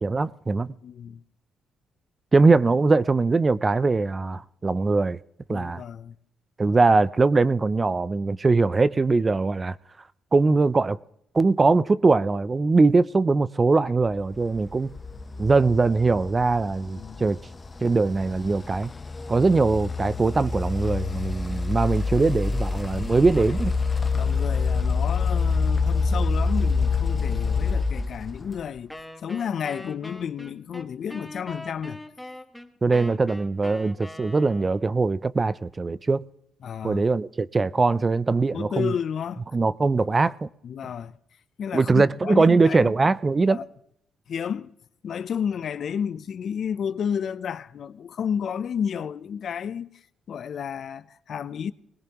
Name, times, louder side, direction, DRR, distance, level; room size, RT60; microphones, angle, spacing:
voice 1, 0.0-0.7 2.3-5.2 5.5-5.8 6.6-9.8 10.3-11.0 11.3-14.9 15.4-17.4 17.8-18.9 19.3-23.7 32.8-36.2 36.8-38.9 39.5-40.5 41.7-43.6, right 3 dB, 25° right, 0.4 m, -21 dB
voice 2, 0.8-1.2 5.5-6.1 17.0-17.3 23.2-23.7 24.1-28.9 29.2-32.0 36.6-37.0 38.5-39.5 40.6-41.2 41.6-42.9 43.5-43.6 44.3-44.7 45.0-49.9 50.3-51.7, left 7 dB, 60° left, 0.6 m, -31 dB
sound 1, 14.3-28.8, left 4 dB, 25° left, 0.9 m, -27 dB
Wind instrument woodwind instrument, 28.9-34.9, left 1 dB, 5° left, 1.3 m, -42 dB
20.5 x 18.0 x 3.0 m
cardioid pair, 90°, 0 cm